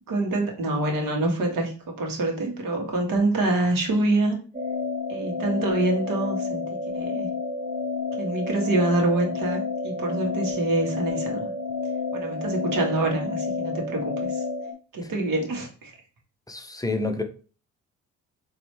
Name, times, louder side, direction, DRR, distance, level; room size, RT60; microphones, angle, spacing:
voice 1, 0.1-4.4 5.1-7.3 8.2-11.5 12.1-14.4 14.9-15.9, right 2 dB, 60° right, 1 dB, 1.4 m, -26 dB
sound 1, 4.5-14.7, left 4 dB, 25° right, 0.9 m, -30 dB
voice 2, 16.5-17.2, left 3 dB, 10° left, 6 dB, 0.6 m, -28 dB
4.0 x 2.7 x 3.0 m, 0.37 s
hypercardioid pair, 50°, 38 cm